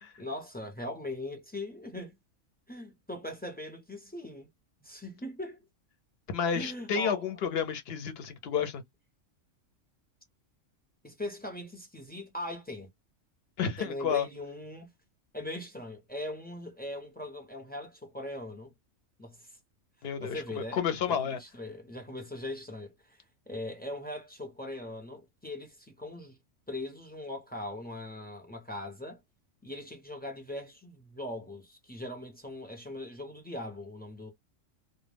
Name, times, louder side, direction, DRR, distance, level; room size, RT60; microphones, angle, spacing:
voice 1, 0.2-2.2 2.7-4.5 4.8-5.6 6.5-7.3 11.0-12.9 13.8-14.9 15.3-18.7 19.2-19.6 20.2-20.8 21.1-23.2 23.5-26.4 26.7-29.2 29.6-34.3, left 1 dB, 15° left, 0.3 m, -40 dB
voice 2, 6.3-8.8 13.6-14.3 20.0-21.4, left 7 dB, 60° left, 0.7 m, -31 dB
2.2 x 2.1 x 3.2 m
omnidirectional pair, 1.4 m